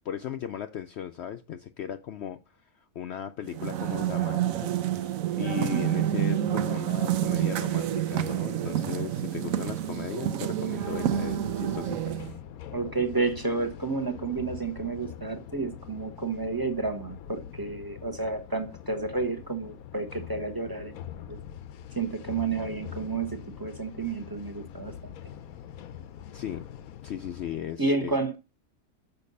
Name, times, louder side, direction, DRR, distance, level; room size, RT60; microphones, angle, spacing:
voice 1, 0.0-4.7 5.4-12.2 26.3-26.7 27.0-28.1, left 9 dB, 65° left, 0.7 m, -37 dB
sound 1, 3.5-12.4, right 11 dB, 75° right, 1.1 m, -28 dB
sound 2, 10.8-27.6, left 10 dB, 85° left, 1.1 m, -44 dB
voice 2, 12.7-21.4 21.9-25.2 27.8-28.4, right 3 dB, 20° right, 0.8 m, -31 dB
6.8 x 5.3 x 5.3 m
omnidirectional pair, 1.5 m